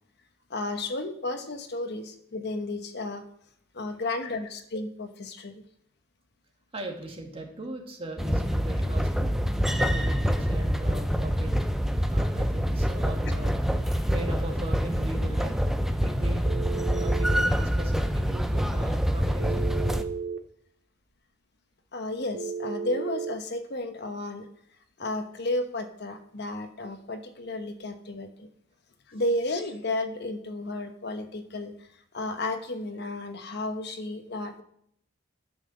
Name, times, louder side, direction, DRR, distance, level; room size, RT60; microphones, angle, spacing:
voice 1, 0.5-3.2 3.7-5.6 21.9-24.5 25.0-28.5 29.1-31.7 32.1-34.6, left 2 dB, 60° left, 8 dB, 1.1 m, -33 dB
voice 2, 6.7-9.3 9.8-11.5 12.1-16.5 17.0-19.7, right 2 dB, 30° right, 2 dB, 1.9 m, -39 dB
sound 1, 8.2-20.0, equal, ahead, 0.6 m, -26 dB
Telephone, 16.4-17.5 19.4-20.4 22.3-23.4, right 5 dB, 70° right, 0.9 m, -33 dB
11.0 x 5.8 x 6.8 m, 0.70 s
head